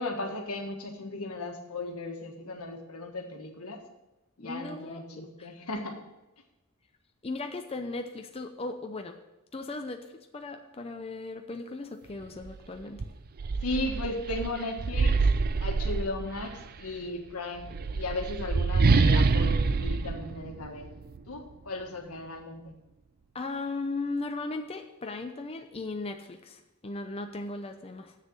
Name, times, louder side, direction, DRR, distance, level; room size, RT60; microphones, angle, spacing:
voice 1, 0.0-3.8 4.4-6.0 13.6-15.2 15.6-20.9 21.3-22.7, left 2 dB, 85° left, 3 dB, 1.5 m, -36 dB
voice 2, 4.4-5.5 7.2-9.2 9.5-10.1 10.3-13.0 23.3-28.2, left 3 dB, 25° left, 5 dB, 0.6 m, -37 dB
sound 1, 12.4-12.6 13.0-16.6 17.6-21.2, right 4 dB, 45° right, 0.4 m, -26 dB
7.4 x 6.6 x 7.5 m, 1.0 s
head